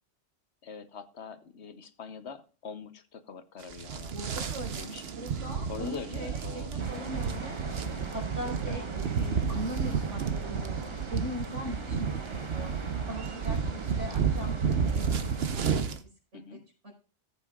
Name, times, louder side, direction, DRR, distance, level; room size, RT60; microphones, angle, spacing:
voice 1, 0.6-4.1 4.8-5.0 5.7-6.7 6.9-7.0 8.7-8.8 11.8-12.0 13.6-13.9 16.3-16.6, left 5 dB, 65° left, 10 dB, 1.2 m, -43 dB
sound 1, 3.6-16.0, right 6 dB, 60° right, 1.1 m, -31 dB
voice 2, 4.1-7.6 8.1-12.7 13.1-14.5 14.8-15.2 15.6-16.1 16.5-16.6 16.8-16.9, equal, 85° right, -1 dB, 5.2 m, -40 dB
sound 2, 6.8-15.8, right 3 dB, 25° right, 1.0 m, -42 dB
17.5 x 8.3 x 2.4 m, 0.35 s
omnidirectional pair, 1.2 m